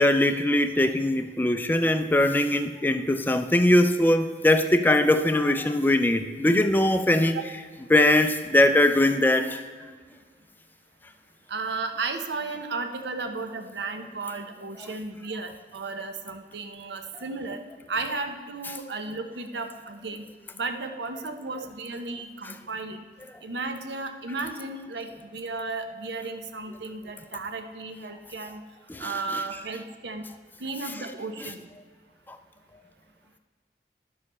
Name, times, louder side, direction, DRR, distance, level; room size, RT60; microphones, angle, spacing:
voice 1, 0.0-7.4 7.9-9.6 28.9-29.4, left 1 dB, 10° left, 8 dB, 0.4 m, -21 dB
voice 2, 11.5-17.6 17.9-20.2 20.5-23.0 23.4-28.6 29.0-30.2 30.6-31.7, right 3 dB, 75° right, 6 dB, 0.8 m, -34 dB
10.5 x 7.2 x 4.2 m, 1.5 s
head